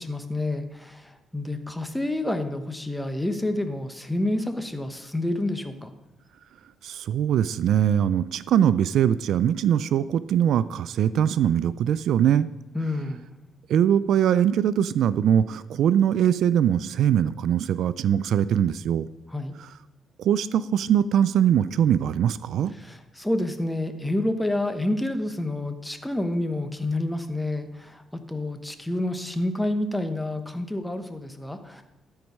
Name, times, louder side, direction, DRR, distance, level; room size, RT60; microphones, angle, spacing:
voice 1, 0.0-5.9 12.7-13.2 19.3-19.5 22.7-31.8, left 1 dB, 5° left, 7 dB, 1.0 m, -29 dB
voice 2, 6.8-12.5 13.7-19.1 20.2-22.7, right 9 dB, 75° right, 16 dB, 0.3 m, -22 dB
13.0 x 4.6 x 5.4 m, 0.97 s
cardioid pair, 90°, 0 cm